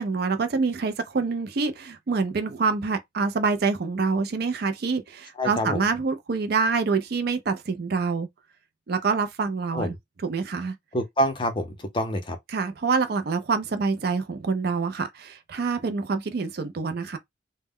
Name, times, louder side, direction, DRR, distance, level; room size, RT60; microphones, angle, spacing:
voice 1, 0.0-8.3 8.9-9.9 10.2-10.7 12.5-17.2, right 4 dB, 55° right, 0.4 m, -26 dB
voice 2, 5.4-5.8 9.7-9.9 10.9-12.4, equal, 25° left, 0.6 m, -26 dB
2.1 x 2.1 x 3.5 m
head